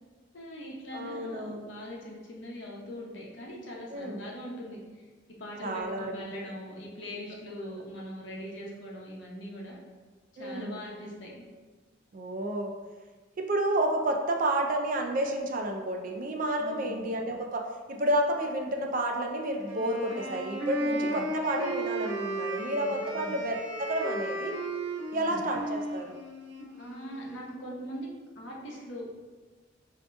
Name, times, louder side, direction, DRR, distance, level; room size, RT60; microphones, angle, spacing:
voice 1, 0.3-4.8 5.3-9.8 10.3-11.3 16.6-17.0 20.9-21.2 22.6-23.3 25.1-25.4 26.8-28.1 28.3-29.2, equal, 70° left, -3 dB, 0.8 m, -41 dB
voice 2, 0.9-1.7 3.9-4.2 5.6-6.2 10.4-10.8 12.1-12.7 13.4-24.5 25.1-26.2, right 1 dB, 45° right, 3 dB, 0.4 m, -30 dB
Wind instrument woodwind instrument, 19.6-27.5, right 1 dB, 80° right, 1.0 m, -35 dB
5.3 x 2.8 x 2.2 m, 1.4 s
head